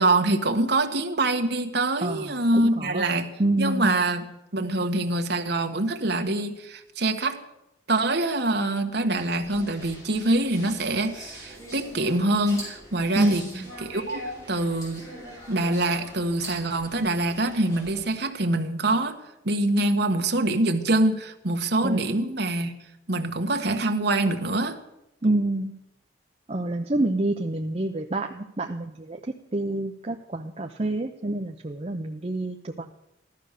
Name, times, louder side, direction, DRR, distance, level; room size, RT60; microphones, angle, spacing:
voice 1, 0.0-3.3 3.6-7.4 7.9-13.5 13.8-15.0 15.5-22.7 23.1-24.8, right 2 dB, 55° right, 6 dB, 1.4 m, -25 dB
voice 2, 2.0-3.1 3.4-3.9 13.2-13.7 21.8-22.1 25.2-25.7 26.5-29.2 29.5-32.9, right 2 dB, 30° right, 3 dB, 0.7 m, -27 dB
sound 1, 9.1-18.1, equal, 15° left, 6.4 m, -42 dB
15.5 x 12.5 x 6.6 m, 0.86 s
head